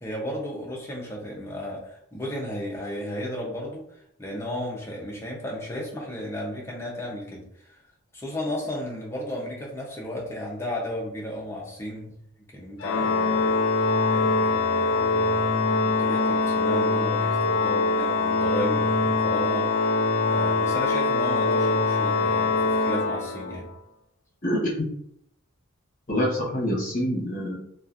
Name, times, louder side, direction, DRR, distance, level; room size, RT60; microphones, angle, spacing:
voice 1, 0.0-7.8 8.1-12.1 12.5-13.6 14.1-19.7 20.3-23.7, equal, 10° left, -3 dB, 0.6 m, -34 dB
Organ, 12.8-23.7, left 3 dB, 60° left, 0.4 m, -23 dB
voice 2, 24.4-24.9 26.1-27.6, equal, 40° left, -5 dB, 1.2 m, -26 dB
2.9 x 2.4 x 2.5 m, 0.72 s
head